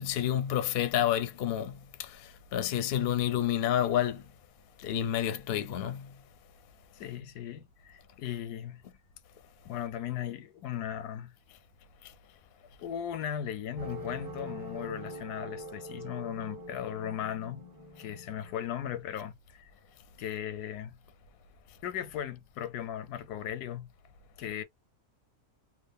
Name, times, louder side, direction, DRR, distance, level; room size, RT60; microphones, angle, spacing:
voice 1, 0.0-4.2 4.8-6.2 12.0-12.1, left 11 dB, 60° left, 0.6 m, -29 dB
voice 2, 7.0-8.8 9.6-11.3 12.8-17.6 18.0-19.7 20.2-21.0 21.8-23.9 24.4-24.6, left 10 dB, 85° left, 1.2 m, -37 dB
sound 1, 13.8-19.0, equal, 20° right, 0.6 m, -43 dB
2.8 x 2.4 x 3.5 m
omnidirectional pair, 1.6 m